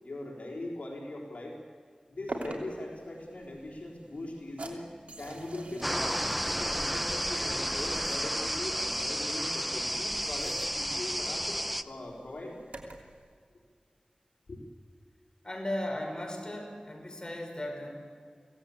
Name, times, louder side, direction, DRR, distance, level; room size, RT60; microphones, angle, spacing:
voice 1, 0.0-1.6 2.1-4.8 5.2-6.1 6.4-11.6 11.9-12.6 14.5-14.6, left 1 dB, 85° left, -2 dB, 3.8 m, -40 dB
sound 1, 2.3-13.2, right 2 dB, 75° right, 3.0 m, -46 dB
sound 2, 5.8-11.8, equal, 5° right, 0.8 m, -32 dB
voice 2, 15.4-17.9, left 1 dB, 35° left, 2 dB, 5.5 m, -36 dB
24.5 x 17.0 x 8.6 m, 2.1 s
wide cardioid pair, 55°, 2 cm